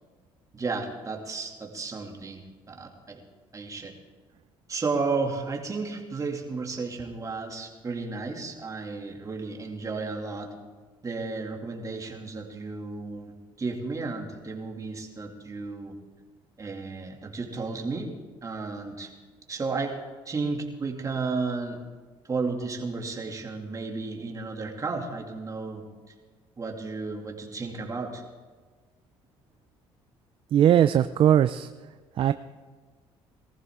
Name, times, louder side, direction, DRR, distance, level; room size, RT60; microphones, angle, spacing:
voice 1, 0.5-3.2 3.5-3.9 4.7-10.5 11.0-16.0 16.6-18.1 18.4-19.1 19.5-20.0 20.3-21.8 22.3-25.8 26.6-28.2, right 4 dB, 30° right, 1 dB, 2.5 m, -33 dB
voice 2, 30.5-31.7 32.2-32.3, right 10 dB, 55° right, 12 dB, 0.4 m, -19 dB
19.5 x 14.5 x 3.7 m, 1.4 s
cardioid pair, 90°, 11 cm